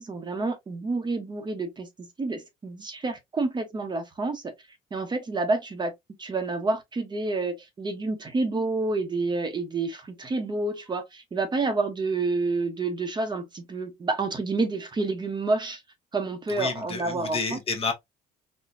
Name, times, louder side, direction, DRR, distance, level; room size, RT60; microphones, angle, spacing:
voice 1, 0.0-4.5 4.9-5.9 6.2-15.8 16.1-17.6, right 3 dB, 25° right, 0.8 m, -29 dB
voice 2, 16.5-17.9, left 4 dB, 35° left, 1.0 m, -30 dB
4.0 x 2.2 x 2.5 m
cardioid pair, 110°, 17 cm